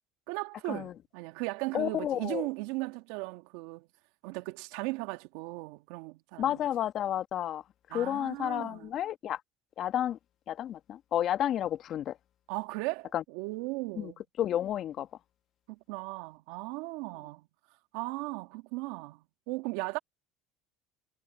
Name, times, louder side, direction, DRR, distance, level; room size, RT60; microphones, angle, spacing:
voice 1, 0.3-3.9 4.2-6.6 7.9-8.9 12.5-14.2 15.7-17.5 17.9-20.0, right 23 dB, 75° right, 1.7 m, -37 dB
voice 2, 1.7-2.5 6.4-7.6 7.9-9.4 9.8-10.2 10.5-12.2 13.1-13.2 14.0-14.1 14.4-15.1, left 11 dB, 50° left, 1.5 m, -31 dB
hypercardioid pair, 85°, 0 cm